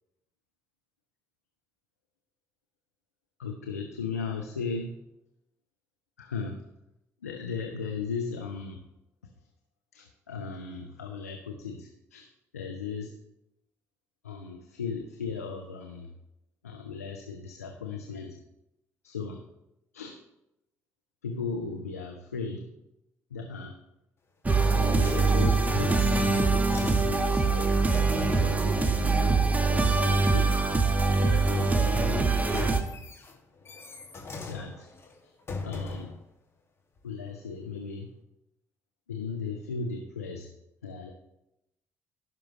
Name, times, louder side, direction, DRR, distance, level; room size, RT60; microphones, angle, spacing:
voice 1, 3.4-5.0 6.2-6.6 7.2-8.8 9.9-12.3 12.5-13.1 14.2-16.1 16.6-18.4 19.0-19.4 19.9-20.2 21.2-22.7 23.3-23.8 24.8-27.7 28.1-30.6 31.2-32.9 34.5-34.9 35.2-35.3 35.6-36.1 37.0-38.1 39.1-40.5 40.8-41.1, left 5 dB, 85° left, 3 dB, 0.7 m, -37 dB
sound 1, 24.4-32.8, right 3 dB, 20° right, 1.2 m, -24 dB
sound 2, 24.6-28.7 32.0-36.2 37.0-37.1, left 3 dB, 30° left, 2.0 m, -41 dB
16.5 x 6.0 x 3.1 m, 0.88 s
figure-of-eight pair, 50°, 8 cm